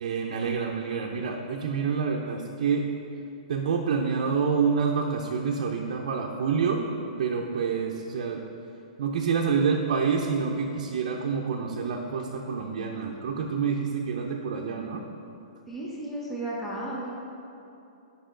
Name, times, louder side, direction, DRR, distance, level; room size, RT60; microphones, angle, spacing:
voice 1, 0.0-2.9 3.5-6.9 7.2-8.4 9.0-15.0, right 5 dB, 60° right, -1 dB, 0.6 m, -27 dB
voice 2, 15.7-17.1, right 1 dB, 5° left, -6 dB, 1.0 m, -34 dB
8.8 x 5.5 x 3.8 m, 2.8 s
hypercardioid pair, 160°, 4 cm